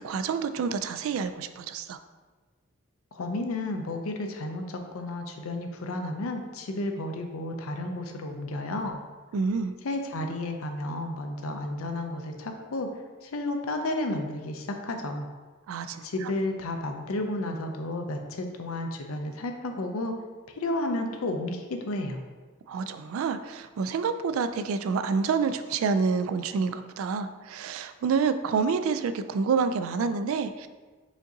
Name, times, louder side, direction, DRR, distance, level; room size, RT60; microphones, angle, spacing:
voice 1, 0.0-2.0 9.3-9.7 15.7-16.3 22.7-30.7, right 5 dB, 70° right, 11 dB, 0.3 m, -28 dB
voice 2, 3.1-9.0 9.8-12.9 13.2-15.3 16.0-20.1 20.5-22.2, left 2 dB, 90° left, 4 dB, 0.5 m, -32 dB
5.1 x 2.7 x 3.8 m, 1.3 s
head